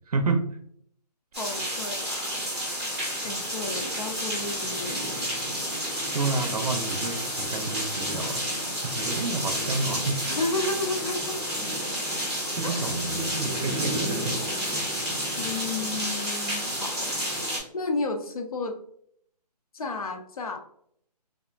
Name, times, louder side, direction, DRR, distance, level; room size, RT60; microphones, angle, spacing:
voice 1, 0.1-0.4 6.1-8.4 8.8-10.2 12.6-14.4, right 3 dB, 60° right, 7 dB, 0.6 m, -29 dB
sound 1, 1.3-17.6, equal, ahead, 0.7 m, -30 dB
voice 2, 1.4-2.3 3.2-5.2 10.4-11.5 12.6-13.0 15.4-17.3 17.7-18.8 19.7-20.6, left 3 dB, 60° left, 5 dB, 0.6 m, -32 dB
3.5 x 2.1 x 2.3 m, 0.65 s
hypercardioid pair, 170°, 21 cm